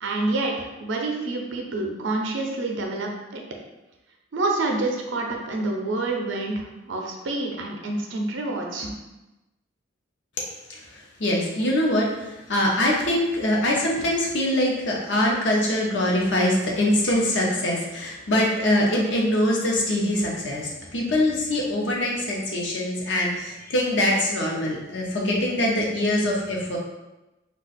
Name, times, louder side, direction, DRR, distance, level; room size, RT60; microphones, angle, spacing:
voice 1, 0.0-3.4 4.3-9.0, right 2 dB, 75° right, 1 dB, 0.5 m, -28 dB
voice 2, 11.2-26.8, left 1 dB, 65° left, -2 dB, 0.7 m, -23 dB
2.4 x 2.3 x 3.9 m, 1.0 s
head